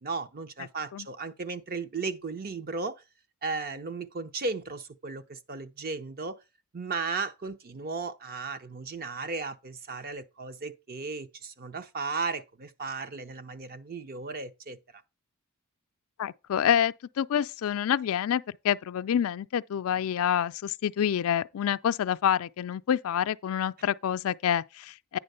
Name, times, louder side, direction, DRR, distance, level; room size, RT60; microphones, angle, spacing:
voice 1, 0.0-3.0 3.4-6.4 6.7-14.8, right 4 dB, 45° right, 0.7 m, -35 dB
voice 2, 16.2-25.2, left 9 dB, 65° left, 0.4 m, -27 dB
9.4 x 3.5 x 6.7 m
head